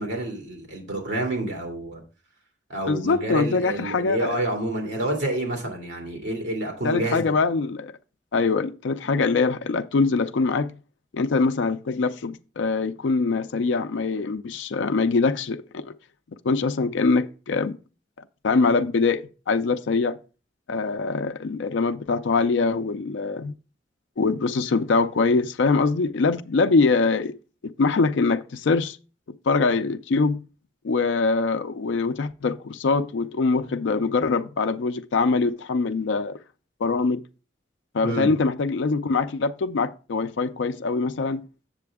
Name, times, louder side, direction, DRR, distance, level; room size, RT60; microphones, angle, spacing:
voice 1, 0.0-2.0 2.7-7.4 38.0-38.3, right 1 dB, 75° right, 2.4 m, -28 dB
voice 2, 2.9-4.4 6.8-7.9 8.3-10.8 11.1-15.9 16.4-17.8 18.4-20.2 20.7-23.5 24.2-27.4 27.8-29.0 29.5-30.4 30.8-36.4 36.8-37.2 37.9-41.4, left 4 dB, 85° left, 0.4 m, -23 dB
7.4 x 6.8 x 3.5 m
head